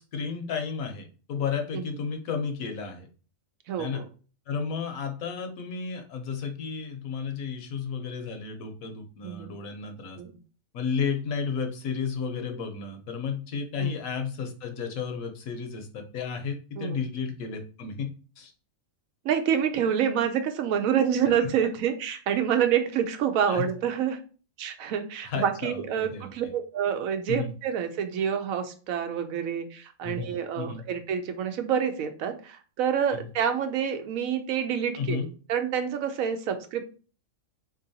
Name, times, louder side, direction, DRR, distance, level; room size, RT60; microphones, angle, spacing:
voice 1, 0.0-3.1 3.8-4.0 4.5-10.2 10.7-18.1 18.4-18.5 21.3-21.5 23.5-23.6 25.3-26.5 27.3-27.5 30.0-30.8 35.0-35.3, left 6 dB, 80° left, 5 dB, 1.2 m, -33 dB
voice 2, 3.7-4.1 9.2-9.5 10.2-10.3 13.8-13.9 16.8-17.0 19.2-24.2 24.6-36.8, right 8 dB, 80° right, 7 dB, 1.0 m, -27 dB
3.8 x 3.0 x 2.7 m, 0.37 s
omnidirectional pair, 1.4 m